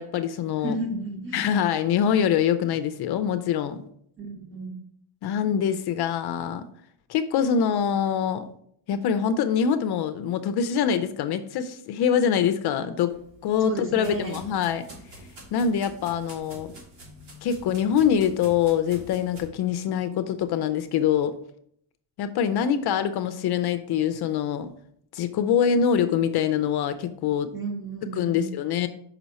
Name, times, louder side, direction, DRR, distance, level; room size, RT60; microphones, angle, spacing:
voice 1, 0.0-0.7 1.3-3.8 5.2-6.7 7.1-8.5 8.9-14.9 15.5-16.7 17.4-21.4 22.2-24.7 25.1-27.5 28.0-28.9, left 8 dB, 55° left, 10 dB, 0.5 m, -24 dB
voice 2, 0.6-1.4 4.2-4.8 13.6-14.4 27.5-28.5, right 2 dB, 25° right, 1 dB, 1.7 m, -32 dB
sound 1, 13.1-19.4, right 1 dB, 75° right, 3.1 m, -46 dB
5.9 x 5.6 x 4.2 m, 0.69 s
cardioid pair, 140°, 47 cm